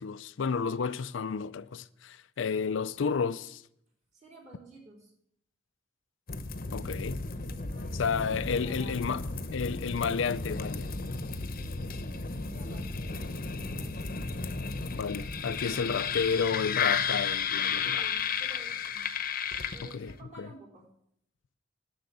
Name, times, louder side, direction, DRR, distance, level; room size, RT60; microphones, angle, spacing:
voice 1, 0.0-3.6 6.7-7.2 7.9-9.2 9.5-11.0 14.9-18.1 19.8-20.5, left 5 dB, 80° left, 0.5 m, -31 dB
voice 2, 4.1-5.1 7.5-8.1 8.5-9.2 11.3-13.4 13.7-14.5 15.7-15.8 17.8-19.1 19.7-20.9, right 2 dB, 40° right, 4.0 m, -53 dB
sound 1, 6.3-20.2, left 5 dB, 50° left, 0.9 m, -33 dB
12.0 x 6.4 x 8.4 m
head